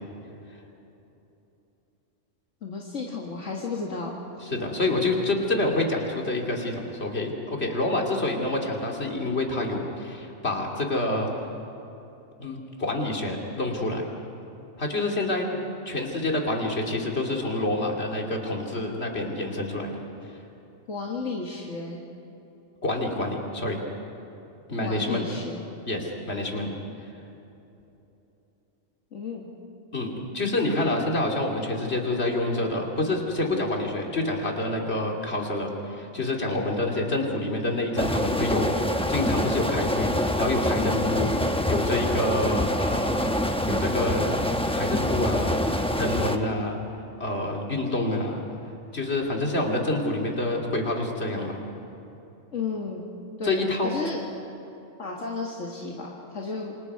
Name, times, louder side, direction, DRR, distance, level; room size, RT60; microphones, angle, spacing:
voice 1, 2.6-4.1 4.4-4.5 20.9-22.0 24.8-25.7 29.1-29.5 52.5-53.1 53.4-54.2 55.0-56.8, left 4 dB, 70° left, -2 dB, 2.1 m, -33 dB
voice 2, 4.4-11.3 12.4-14.1 14.8-15.4 15.9-19.9 22.8-23.8 24.7-25.2 25.9-26.7 29.9-40.1 40.4-43.3 43.7-44.3 44.7-46.8 47.2-48.4 48.9-51.6 53.4-53.9, left 2 dB, 55° left, 0 dB, 2.9 m, -27 dB
sound 1, 38.0-46.4, left 1 dB, 5° left, 0.8 m, -26 dB
28.0 x 25.5 x 4.8 m, 3.0 s
omnidirectional pair, 1.3 m